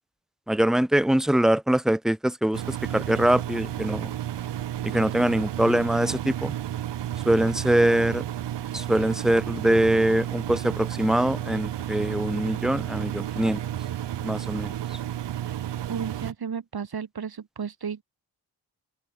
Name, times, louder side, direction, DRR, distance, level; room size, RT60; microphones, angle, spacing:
voice 1, 0.5-4.1 4.8-6.5 7.2-8.2 8.7-13.6 14.2-15.0, right 1 dB, ahead, 1.0 m, -23 dB
Engine, 2.5-16.3, right 11 dB, 85° right, 3.2 m, -32 dB
voice 2, 15.9-18.0, right 7 dB, 60° right, 4.7 m, -33 dB
supercardioid pair, 45°, 41 cm